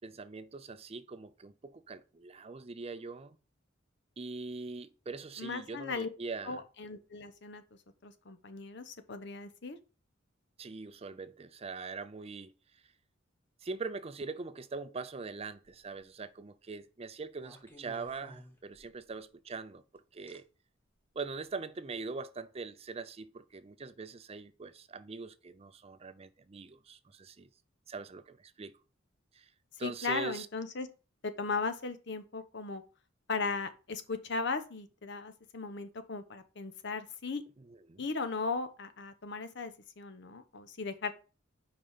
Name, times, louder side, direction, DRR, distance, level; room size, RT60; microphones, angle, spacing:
voice 1, 0.0-3.4 4.2-6.6 10.6-12.5 13.6-19.8 20.1-20.5 21.2-27.5 27.9-28.7 29.3-29.5 29.8-30.5 37.6-38.0, right 4 dB, 30° right, 0.5 m, -42 dB
voice 2, 5.4-6.1 6.4-7.6 8.0-9.8 29.8-30.9 31.2-32.8 33.3-37.4 38.0-41.1, left 4 dB, 60° left, 0.9 m, -37 dB
sound 1, 15.6-16.0 17.4-19.1 20.3-20.4 21.2-21.4, equal, 10° left, 1.4 m, -54 dB
5.2 x 4.8 x 5.5 m
head